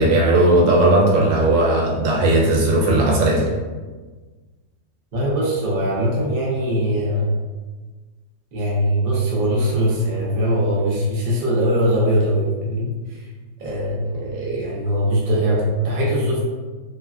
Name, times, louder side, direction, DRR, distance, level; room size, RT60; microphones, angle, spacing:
voice 1, 0.0-3.5, right 1 dB, 90° right, -2 dB, 1.3 m, -17 dB
voice 2, 5.1-7.4 8.5-13.2 13.6-16.4, equal, 55° right, -5 dB, 0.5 m, -21 dB
3.1 x 2.2 x 2.3 m, 1.3 s
omnidirectional pair, 1.9 m